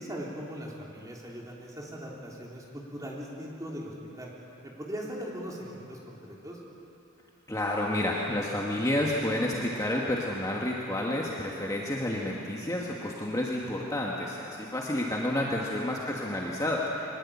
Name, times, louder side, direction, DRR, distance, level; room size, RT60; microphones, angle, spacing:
voice 1, 0.0-4.3 4.6-6.2 6.4-6.6 15.4-15.7, equal, 15° right, -3 dB, 3.5 m, -40 dB
voice 2, 7.5-17.1, left 1 dB, 15° left, -3 dB, 1.6 m, -30 dB
22.5 x 20.5 x 8.6 m, 2.9 s
head